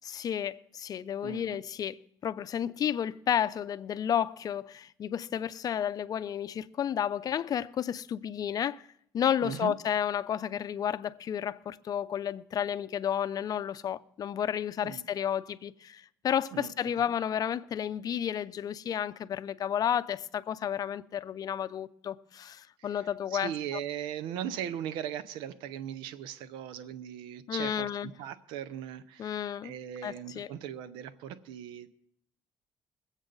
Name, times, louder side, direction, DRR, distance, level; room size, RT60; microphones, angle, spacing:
voice 1, 0.0-8.8 9.1-23.8 27.5-28.1 29.2-29.7 30.0-30.5, left 9 dB, 50° left, 0.6 m, -32 dB
voice 2, 1.2-1.6 9.4-9.7 14.8-15.0 16.5-17.2 22.8-31.9, right 10 dB, 90° right, 0.7 m, -39 dB
21.5 x 8.1 x 3.9 m
cardioid pair, 85°, 8 cm